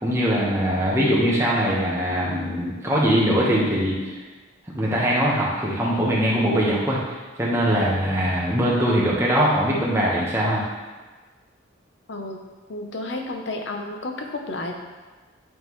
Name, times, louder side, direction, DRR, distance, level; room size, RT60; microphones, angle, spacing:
voice 1, 0.0-4.1 4.7-10.6, equal, 15° right, -5 dB, 1.1 m, -22 dB
voice 2, 12.1-12.4 12.7-14.7, left 2 dB, 65° left, 3 dB, 0.7 m, -31 dB
8.9 x 3.7 x 3.1 m, 1.3 s
head